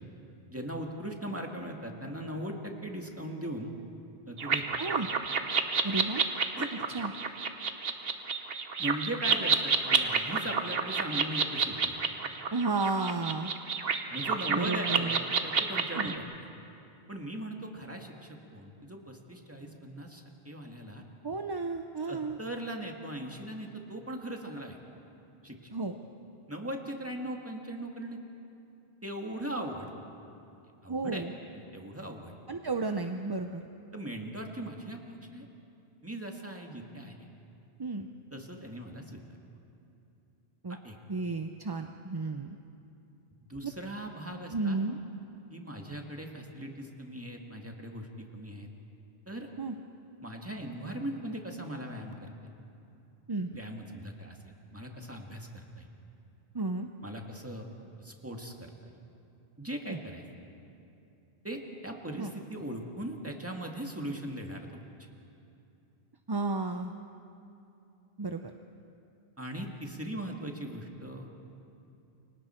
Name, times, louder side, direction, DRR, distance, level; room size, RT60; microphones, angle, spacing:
voice 1, 0.5-3.7 4.3-4.6 6.6-7.0 8.8-12.0 14.1-16.2 17.1-21.0 22.1-24.8 25.4-25.7 26.5-28.2 29.0-29.9 30.8-31.2 31.5-32.3 33.9-35.5 36.0-37.3 38.3-39.2 40.7-41.0 43.5-44.8 45.5-48.7 49.3-49.5 50.2-52.3 53.5-54.4 54.7-55.9 57.0-57.7 58.0-58.7 59.6-60.2 61.4-64.7 69.4-71.5, right 1 dB, 15° right, 1 dB, 1.9 m, -39 dB
sound 1, 4.4-16.2, right 5 dB, 70° right, 1.2 m, -30 dB
voice 2, 5.8-6.3 6.9-7.1 12.5-13.5 14.5-15.2 16.0-16.1 21.2-22.4 25.7-26.0 30.9-31.3 32.5-33.6 37.8-38.1 40.6-40.8 41.1-42.6 43.6-43.7 44.5-45.0 49.6-49.8 53.3-53.5 56.5-56.9 59.9-60.0 62.2-62.3 66.3-66.9 68.2-68.5, right 3 dB, 30° right, 5 dB, 0.6 m, -32 dB
29.0 x 24.5 x 4.4 m, 2.7 s
omnidirectional pair, 1.0 m